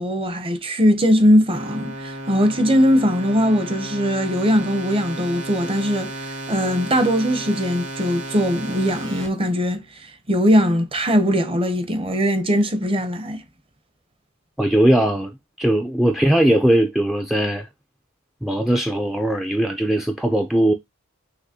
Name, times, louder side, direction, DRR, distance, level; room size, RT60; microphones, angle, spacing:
voice 1, 0.0-9.8 10.3-13.4, equal, 25° right, 0.7 m, -20 dB
sound 1, 1.5-9.3, right 1 dB, 60° right, 1.8 m, -33 dB
voice 2, 14.6-17.7 18.4-20.7, right 1 dB, ahead, 0.4 m, -19 dB
5.9 x 3.0 x 2.7 m
head